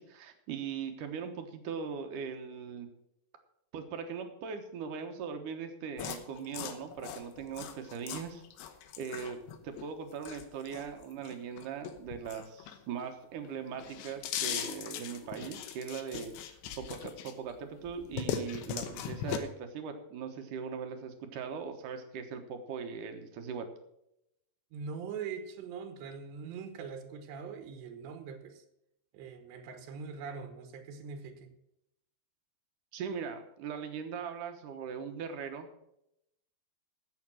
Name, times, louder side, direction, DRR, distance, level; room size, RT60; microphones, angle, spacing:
voice 1, 0.0-2.9 3.7-8.4 9.0-16.3 16.8-23.7 32.9-35.7, right 6 dB, 65° right, 6 dB, 2.1 m, -40 dB
sound 1, 6.0-13.1 13.5-17.5 17.9-19.4, left 9 dB, 90° left, 3.3 m, -39 dB
voice 2, 24.7-28.7 29.1-31.5, right 6 dB, 85° right, 8 dB, 3.4 m, -42 dB
15.0 x 6.5 x 6.1 m, 0.81 s
omnidirectional pair, 4.9 m